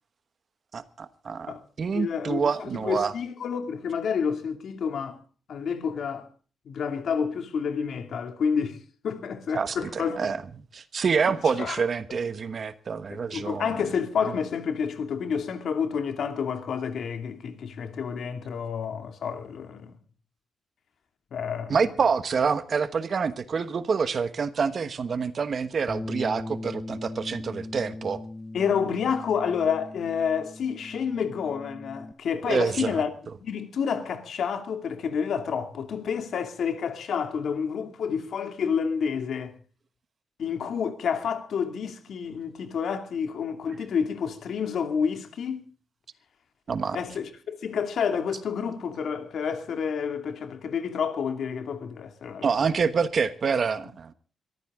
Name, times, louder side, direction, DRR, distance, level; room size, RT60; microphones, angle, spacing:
voice 1, 0.7-3.1 9.5-10.4 10.7-13.7 21.7-28.2 32.5-33.0 46.7-47.0 52.4-54.1, right 5 dB, 35° right, 1.2 m, -27 dB
voice 2, 1.9-5.2 5.5-6.3 6.7-8.8 9.0-10.3 11.3-11.8 13.1-19.9 21.3-21.8 28.5-33.1 33.4-39.6 40.4-45.7 46.9-52.7, left 6 dB, 55° left, 2.5 m, -29 dB
Bass guitar, 25.9-32.1, left 2 dB, 10° left, 0.6 m, -39 dB
22.0 x 14.5 x 3.7 m
wide cardioid pair, 175°, 0 cm